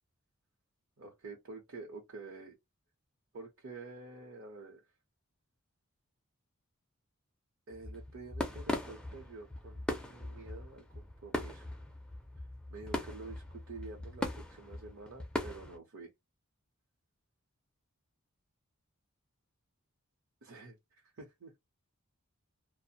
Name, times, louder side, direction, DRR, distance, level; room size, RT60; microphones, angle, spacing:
voice 1, 1.0-2.6 3.3-4.8 7.7-11.7 12.7-16.1 20.4-21.5, right 3 dB, 60° right, 0.8 m, -49 dB
sound 1, 7.7-15.8, left 1 dB, 5° left, 0.4 m, -40 dB
2.4 x 2.1 x 2.6 m
head